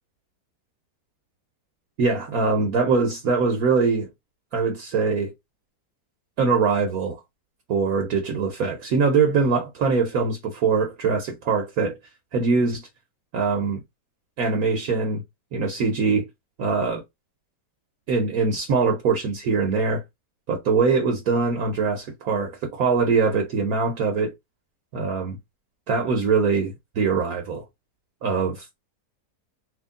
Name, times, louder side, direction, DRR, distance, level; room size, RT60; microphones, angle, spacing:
voice 1, 2.0-4.1 4.5-5.3 6.4-7.2 7.7-12.0 12.3-12.8 13.3-13.8 14.4-15.2 15.5-16.3 16.6-17.0 18.1-20.0 20.5-24.3 24.9-25.4 25.9-27.6 28.2-28.7, right 4 dB, 65° right, 1.2 m, -22 dB
3.1 x 2.9 x 3.6 m
omnidirectional pair, 1.8 m